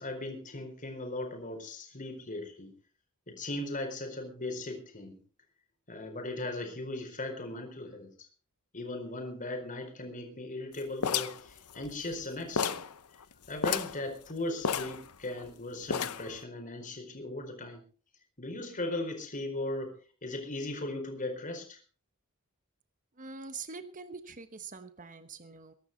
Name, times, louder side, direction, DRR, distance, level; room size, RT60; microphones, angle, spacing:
voice 1, 0.0-2.7 3.3-5.2 5.9-8.1 8.7-12.8 13.5-17.8 18.4-19.9 20.2-21.8, left 2 dB, 35° left, 5 dB, 4.6 m, -38 dB
sound 1, 11.0-12.2 12.6-12.9 13.2-13.3 13.6-14.0 14.6-15.5 15.9-16.4, left 6 dB, 90° left, 0.9 m, -32 dB
voice 2, 23.2-25.7, right 4 dB, 35° right, 10 dB, 1.2 m, -44 dB
22.5 x 11.5 x 4.1 m, 0.39 s
head